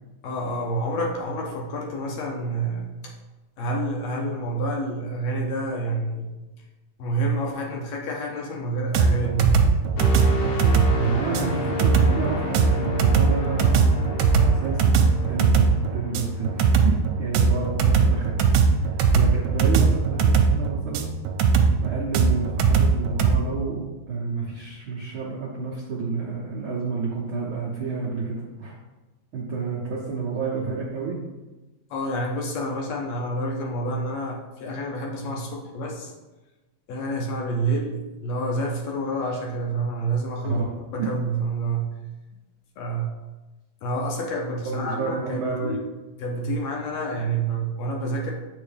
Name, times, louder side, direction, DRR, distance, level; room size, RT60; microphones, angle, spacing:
voice 1, 0.2-3.1 3.6-6.3 7.0-9.8 31.9-36.1 36.9-40.7 40.9-42.0 42.8-43.1 43.8-45.9 46.2-48.3, right 2 dB, 70° left, -1 dB, 1.8 m, -28 dB
sound 1, 8.9-23.4, right 5 dB, 90° right, 2.0 m, -19 dB
sound 2, 10.0-17.8 18.2-18.5, left 2 dB, 90° left, 2.2 m, -32 dB
voice 2, 11.0-14.0 14.4-21.1 21.8-28.8 29.3-31.2 40.4-40.7 41.0-41.1 44.6-45.7, right 4 dB, 70° right, -5 dB, 1.2 m, -30 dB
7.9 x 4.6 x 3.4 m, 1.1 s
omnidirectional pair, 3.4 m